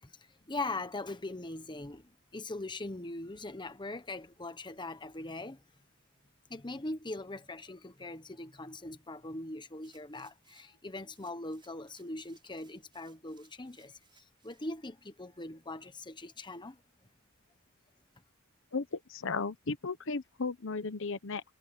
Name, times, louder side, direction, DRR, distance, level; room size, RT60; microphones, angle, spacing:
voice 1, 0.0-5.6 6.5-16.8, left 2 dB, 20° left, 1.2 m, -41 dB
sound 1, 9.8-10.8 11.1-14.7 15.2-15.3, right 6 dB, 25° right, 7.1 m, -67 dB
voice 2, 18.7-21.4, left 4 dB, 65° left, 1.0 m, -35 dB
head